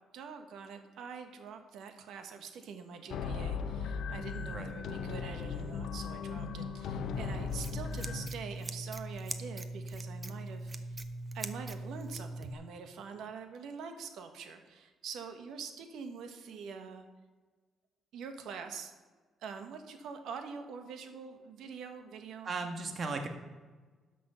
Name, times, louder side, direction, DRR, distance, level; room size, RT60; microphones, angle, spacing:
voice 1, 0.1-11.0 11.3-17.1 18.1-18.9 19.4-22.5, right 6 dB, 80° right, 6 dB, 1.3 m, -45 dB
sound 1, 3.1-8.3, left 5 dB, 75° left, 0.7 m, -37 dB
Scissors, 7.1-12.5, right 2 dB, 25° right, 0.8 m, -41 dB
voice 2, 22.4-23.3, right 3 dB, 50° right, 5 dB, 1.6 m, -36 dB
12.0 x 6.2 x 5.5 m, 1.4 s
cardioid pair, 90°, 0 cm